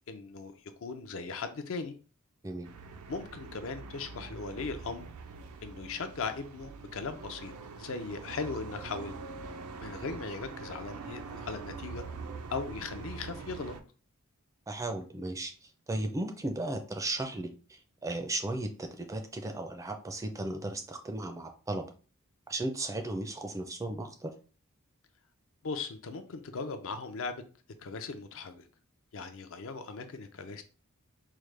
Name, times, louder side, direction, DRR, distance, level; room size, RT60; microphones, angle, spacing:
voice 1, 0.1-0.5 0.8-2.0 3.1-5.0 5.6-7.5 7.8-9.2 9.8-12.0 12.5-13.7 25.6-27.4 27.8-28.6 29.1-30.6, left 4 dB, 65° left, 9 dB, 0.5 m, -38 dB
sound 1, 2.6-13.8, right 4 dB, 85° right, 0.5 m, -44 dB
voice 2, 14.7-15.5 15.9-21.8 22.5-24.3, right 2 dB, 15° right, 6 dB, 0.4 m, -35 dB
4.7 x 2.1 x 3.2 m, 0.37 s
head